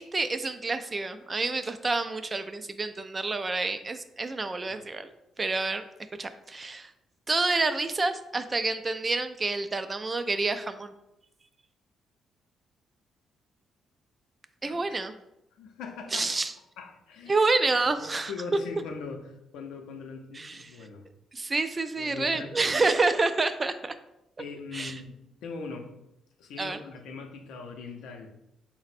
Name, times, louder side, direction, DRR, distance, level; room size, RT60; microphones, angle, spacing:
voice 1, 0.0-5.1 5.4-5.8 6.2-6.9 7.3-10.9 14.6-15.1 16.1-16.5 17.3-18.3 20.4-20.7 21.3-23.9 24.7-24.9 26.6-26.8, right 3 dB, 30° right, 10 dB, 0.3 m, -28 dB
voice 2, 14.7-15.0 15.5-16.3 16.8-17.4 18.0-21.0 22.0-22.8 24.4-26.0 26.4-28.3, left 4 dB, 85° left, 4 dB, 0.5 m, -41 dB
4.0 x 2.0 x 4.2 m, 0.85 s
cardioid pair, 90°, 0 cm